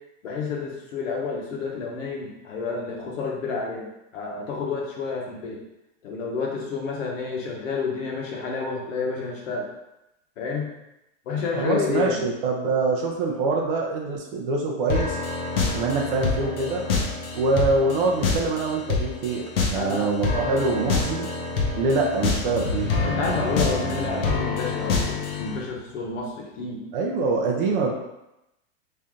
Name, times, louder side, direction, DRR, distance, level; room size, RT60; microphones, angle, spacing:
voice 1, 0.2-5.6 6.0-9.7 10.4-10.7 11.3-12.2 19.7-20.1 23.0-26.8 27.8-27.9, left 4 dB, 65° left, -1 dB, 1.1 m, -30 dB
voice 2, 11.5-15.2 15.7-16.9 17.3-21.3 21.7-22.9 26.9-27.9, right 3 dB, 40° right, 0 dB, 0.6 m, -24 dB
sound 1, 14.9-25.6, left 4 dB, 45° left, 0.7 m, -27 dB
sound 2, 22.5-26.0, left 2 dB, 85° left, 1.4 m, -33 dB
3.2 x 2.7 x 3.6 m, 0.90 s
supercardioid pair, 175°, 41 cm